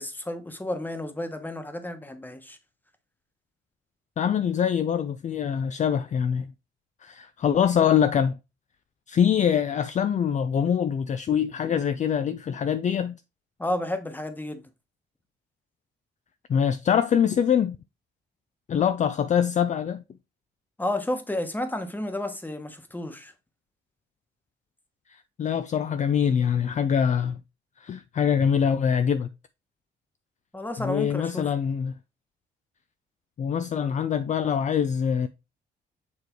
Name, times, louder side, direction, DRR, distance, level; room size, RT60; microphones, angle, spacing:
voice 1, 0.0-2.6 13.6-14.6 20.8-23.3 30.5-31.5, left 1 dB, 10° left, 1.1 m, -31 dB
voice 2, 4.2-6.5 7.0-8.4 9.1-13.2 16.5-17.8 18.7-20.0 25.1-27.4 27.8-29.3 30.8-31.9 33.4-35.3, left 8 dB, 40° left, 0.4 m, -24 dB
7.0 x 3.2 x 4.4 m
cardioid pair, 90°, 20 cm